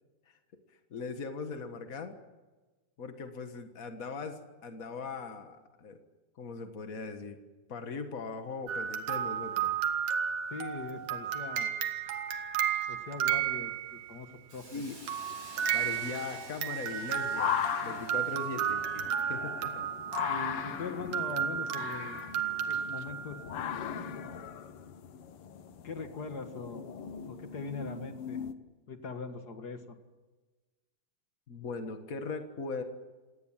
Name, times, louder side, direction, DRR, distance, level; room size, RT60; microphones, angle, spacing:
voice 1, 0.9-2.2 3.0-6.0 6.4-7.4 7.7-9.7 14.7-15.0 15.7-19.8 31.5-32.8, left 4 dB, 60° left, 6 dB, 0.8 m, -40 dB
sound 1, 8.7-14.2 15.1-23.6, right 9 dB, 65° right, 2.8 m, -33 dB
voice 2, 10.5-11.7 12.9-14.8 20.3-22.2 22.7-23.4 25.8-26.8 27.3-28.4 28.9-29.8, left 4 dB, 45° left, 7 dB, 1.4 m, -41 dB
Hiss, 14.5-19.2, right 2 dB, 50° right, 7.3 m, -51 dB
sound 2, 15.1-28.5, left 9 dB, 85° left, 1.2 m, -39 dB
28.0 x 18.5 x 7.5 m, 1.2 s
omnidirectional pair, 4.2 m